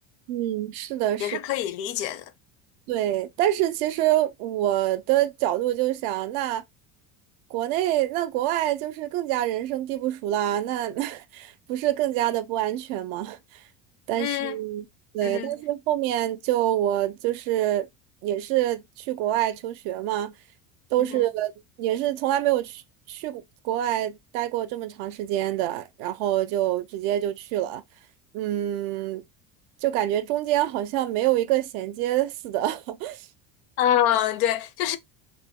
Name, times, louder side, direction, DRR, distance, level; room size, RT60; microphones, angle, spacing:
voice 1, 0.3-1.4 2.9-6.6 7.5-13.4 14.1-14.9 15.1-17.9 18.2-20.3 20.9-21.5 21.8-22.8 23.1-27.8 28.3-29.2 29.8-33.3, right 13 dB, 60° right, 0.5 m, -26 dB
voice 2, 1.2-2.2 14.2-14.5 15.2-15.5 33.8-35.0, left 11 dB, 65° left, 0.5 m, -25 dB
2.6 x 2.1 x 3.5 m
cardioid pair, 170°, 38 cm